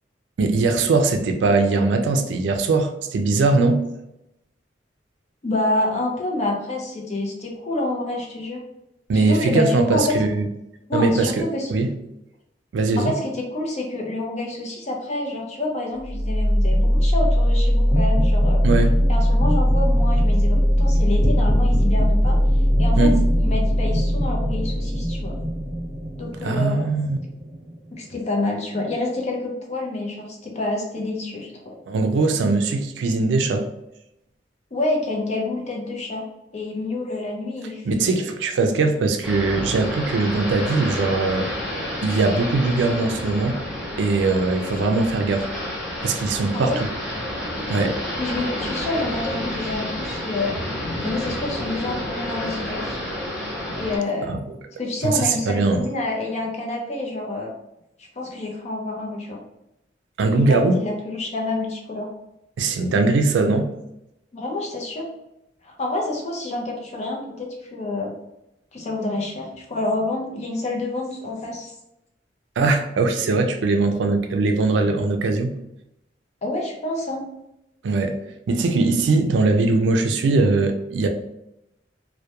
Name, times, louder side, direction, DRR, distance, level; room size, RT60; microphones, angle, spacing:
voice 1, 0.4-3.8 9.1-10.5 10.9-11.4 11.7-11.9 12.7-13.1 18.6-19.0 23.0-23.2 26.4-27.2 31.9-33.7 37.9-41.5 42.0-43.6 44.0-45.5 46.0-46.9 47.7-48.0 54.3-54.6 55.0-55.9 60.2-60.8 62.6-63.7 72.6-75.5 77.8-78.2 78.5-81.1, right 3 dB, 80° right, 0.3 m, -20 dB
voice 2, 5.4-8.6 9.1-10.1 10.9-11.7 13.0-18.6 19.1-22.4 22.8-25.4 26.2-26.9 28.0-31.8 34.7-36.2 36.5-38.3 46.5-46.8 48.2-50.6 51.0-53.0 53.7-54.3 54.8-57.5 58.2-59.4 60.3-62.1 64.3-65.1 65.6-68.1 68.7-71.7 76.4-77.3, left 2 dB, 40° left, 0.5 m, -28 dB
sound 1, 16.0-27.9, equal, 25° left, 1.0 m, -19 dB
sound 2, 39.2-54.0, left 1 dB, ahead, 0.7 m, -30 dB
2.2 x 2.1 x 2.8 m
head